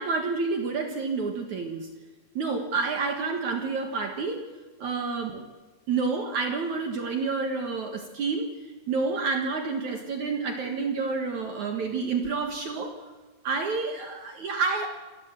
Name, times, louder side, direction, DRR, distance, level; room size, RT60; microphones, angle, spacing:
voice 1, 0.0-1.9 2.3-4.4 4.8-5.5 5.9-8.5 8.9-12.9 13.4-14.9, right 4 dB, 55° right, 4 dB, 2.1 m, -29 dB
27.0 x 15.0 x 7.5 m, 1.3 s
omnidirectional pair, 5.5 m